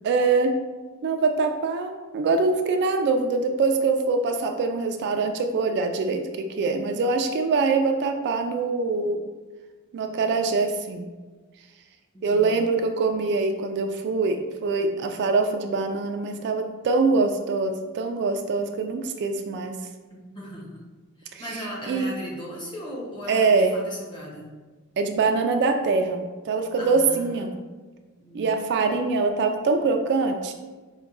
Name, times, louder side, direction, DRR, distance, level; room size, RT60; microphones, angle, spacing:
voice 1, 0.0-0.6 1.0-9.2 9.9-11.0 12.2-19.8 21.3-21.4 21.9-22.1 23.3-23.7 25.0-27.5 28.3-30.5, right 4 dB, 50° right, 5 dB, 0.3 m, -24 dB
voice 2, 12.1-12.6 20.1-20.8 21.2-24.5 26.8-27.6 28.2-28.5, equal, 20° left, -5 dB, 1.0 m, -38 dB
4.7 x 2.2 x 3.8 m, 1.3 s
head